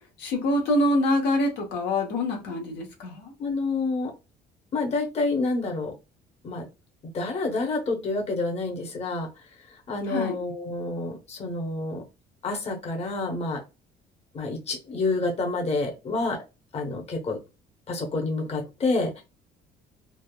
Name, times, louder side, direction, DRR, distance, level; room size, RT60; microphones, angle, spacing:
voice 1, 0.2-3.3 10.1-10.4, left 1 dB, 85° left, 1.0 m, -25 dB
voice 2, 3.4-4.1 4.7-5.9 6.4-6.7 7.1-9.3 9.9-12.0 12.4-13.6 14.3-16.4 16.7-17.4 17.9-19.2, left 3 dB, 40° left, 0.8 m, -28 dB
3.3 x 2.0 x 2.2 m
cardioid pair, 110°, 17 cm